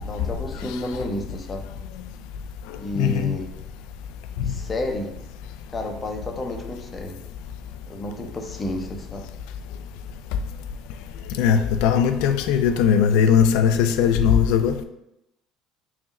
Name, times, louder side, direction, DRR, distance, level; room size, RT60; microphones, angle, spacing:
voice 1, 0.0-1.7 2.8-3.5 4.4-5.2 5.7-7.2 7.9-9.3, left 1 dB, 30° left, 3 dB, 0.7 m, -31 dB
voice 2, 3.0-3.3 4.4-4.5 11.4-14.7, left 7 dB, 75° left, 8 dB, 0.3 m, -19 dB
3.6 x 2.1 x 4.1 m, 0.84 s
hypercardioid pair, 75°, 0 cm